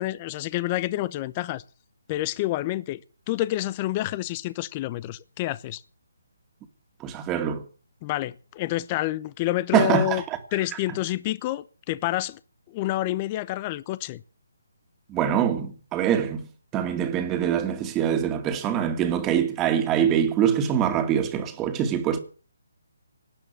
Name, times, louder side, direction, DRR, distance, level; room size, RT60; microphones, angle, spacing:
voice 1, 0.0-1.6 2.1-3.0 3.3-5.8 8.0-10.2 10.5-12.4 12.7-14.2, left 16 dB, 25° left, 0.7 m, -28 dB
voice 2, 7.0-7.6 9.7-10.2 15.1-16.4 16.7-22.2, right 9 dB, 15° right, 2.3 m, -24 dB
19.0 x 9.9 x 7.5 m
hypercardioid pair, 155°, 0 cm